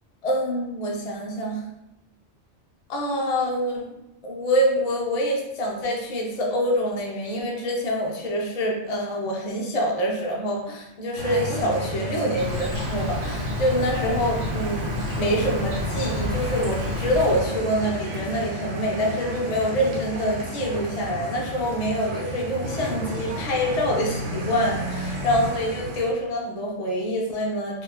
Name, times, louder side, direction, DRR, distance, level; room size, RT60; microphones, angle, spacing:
voice 1, 0.2-1.6 2.9-3.9 4.2-27.8, equal, 40° left, -2 dB, 0.6 m, -26 dB
sound 1, 11.2-26.1, equal, 80° right, 1.0 m, -32 dB
Insect, 12.4-17.4, left 2 dB, 35° right, 1.1 m, -30 dB
3.8 x 2.6 x 2.8 m, 0.89 s
omnidirectional pair, 1.2 m